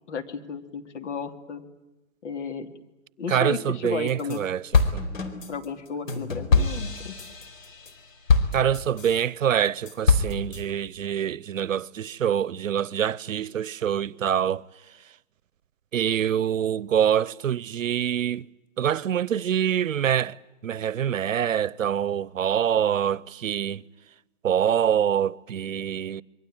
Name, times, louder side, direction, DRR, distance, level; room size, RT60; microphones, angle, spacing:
voice 1, 0.1-1.6 2.2-2.7 3.2-4.4 5.5-7.2, left 5 dB, 65° left, 3.0 m, -33 dB
voice 2, 3.3-4.6 4.9-5.0 8.5-14.6 15.9-18.5 18.8-20.4 20.6-23.8 24.4-26.2, right 9 dB, 85° right, 0.9 m, -25 dB
sound 1, 3.9-4.4 4.7-9.2 9.6-10.6, left 4 dB, 85° left, 4.3 m, -24 dB
26.5 x 23.0 x 8.9 m
hypercardioid pair, 150°, 38 cm